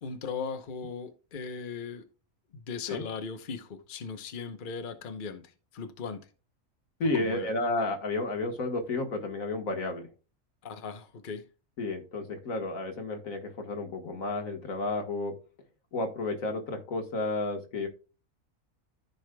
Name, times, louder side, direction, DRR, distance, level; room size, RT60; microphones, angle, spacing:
voice 1, 0.0-2.1 2.5-6.3 7.1-7.5 10.6-11.4, left 5 dB, 45° left, 0.9 m, -38 dB
voice 2, 7.0-10.1 11.8-15.4 15.9-17.9, left 2 dB, 85° left, 1.8 m, -32 dB
14.0 x 5.0 x 2.2 m
omnidirectional pair, 1.4 m